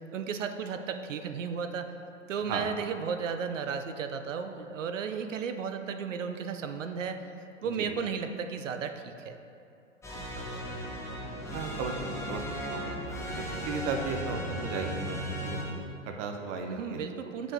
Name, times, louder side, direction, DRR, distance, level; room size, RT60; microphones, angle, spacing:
voice 1, 0.1-1.9 2.3-7.2 7.6-9.4 11.5-11.7 16.7-17.5, right 6 dB, 80° right, 8 dB, 0.5 m, -34 dB
sound 1, 10.0-15.6, equal, 5° left, 0.8 m, -36 dB
voice 2, 11.5-12.4 12.7-17.0, right 4 dB, 25° right, 3 dB, 0.4 m, -36 dB
9.3 x 4.6 x 2.6 m, 2.7 s
hypercardioid pair, 110°, 37 cm